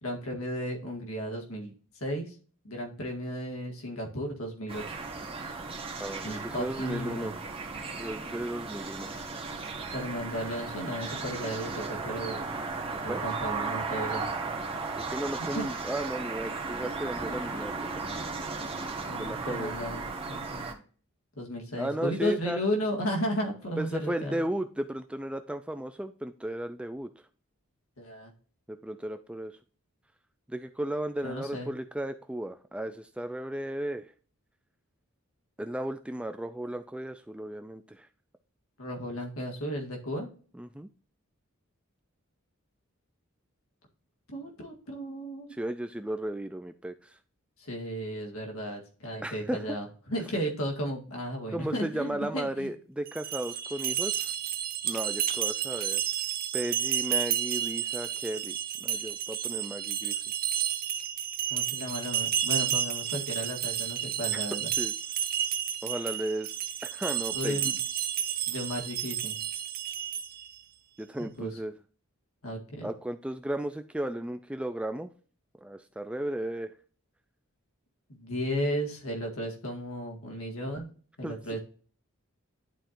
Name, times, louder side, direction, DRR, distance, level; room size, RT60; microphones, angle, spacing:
voice 1, 0.0-2.4 2.6-5.0 6.2-7.3 9.9-12.5 13.0-14.2 15.5-15.7 19.1-20.7 21.4-24.4 28.0-28.3 31.2-31.7 38.8-40.3 44.3-45.5 47.6-52.7 61.5-64.7 67.3-67.8 68.5-69.4 71.2-71.5 72.4-72.9 78.1-80.9 81.2-81.6, equal, 85° left, 1 dB, 2.0 m, -34 dB
sound 1, 4.7-20.7, right 4 dB, 25° right, 1.4 m, -36 dB
voice 2, 6.0-7.3 7.9-9.1 13.1-13.2 15.0-17.7 19.2-19.7 21.8-22.6 23.8-27.1 28.7-29.6 30.5-34.1 35.6-38.1 40.5-40.9 45.5-47.2 49.2-49.8 51.5-54.3 54.8-56.0 56.5-60.2 64.3-64.4 64.8-64.9 65.8-66.5 66.8-67.7 71.0-71.7 72.8-75.1 75.6-76.7 81.2-81.4, right 1 dB, 5° right, 8 dB, 0.4 m, -35 dB
sound 2, 53.1-70.5, right 10 dB, 45° right, 0.7 m, -31 dB
11.0 x 4.4 x 2.6 m, 0.40 s
head